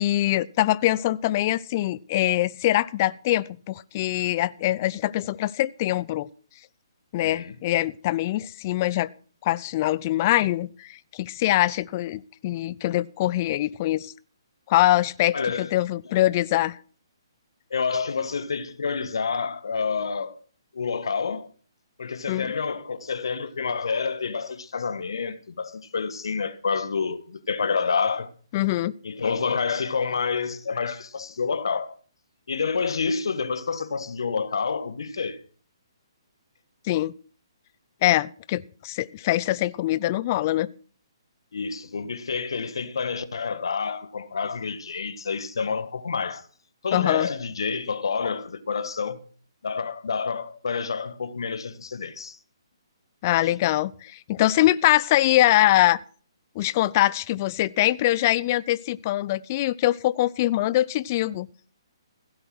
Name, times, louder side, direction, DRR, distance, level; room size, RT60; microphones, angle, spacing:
voice 1, 0.0-6.3 7.1-9.1 9.4-14.1 14.7-16.8 22.3-22.5 28.5-28.9 36.8-37.1 38.0-40.7 46.9-47.3 53.2-56.0 56.6-61.5, left 15 dB, 35° left, 0.5 m, -23 dB
voice 2, 7.2-7.6 15.3-15.7 17.7-20.4 20.7-21.5 22.0-28.3 29.0-31.9 32.5-35.4 41.5-46.5 46.8-49.2 49.6-52.4 53.4-53.5, left 5 dB, 70° left, 1.5 m, -28 dB
16.0 x 8.0 x 6.1 m
figure-of-eight pair, 140°, 3 cm